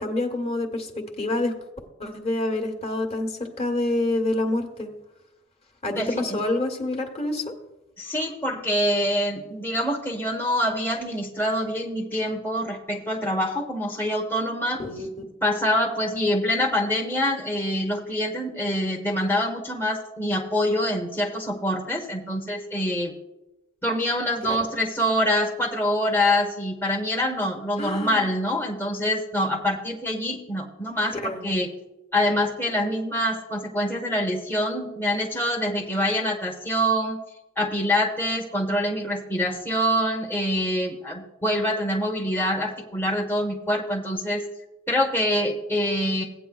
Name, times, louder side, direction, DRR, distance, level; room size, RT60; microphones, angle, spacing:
voice 1, 0.0-1.5 2.0-4.9 5.8-7.5 14.8-15.1 24.4-24.7 27.8-28.3 31.1-31.5, left 2 dB, 30° left, 4 dB, 1.3 m, -27 dB
voice 2, 5.9-6.4 8.0-14.8 15.4-23.1 23.8-31.7 32.1-37.2 37.6-44.4 44.9-46.2, equal, 10° left, 0 dB, 1.0 m, -25 dB
17.0 x 9.0 x 2.3 m, 0.99 s
head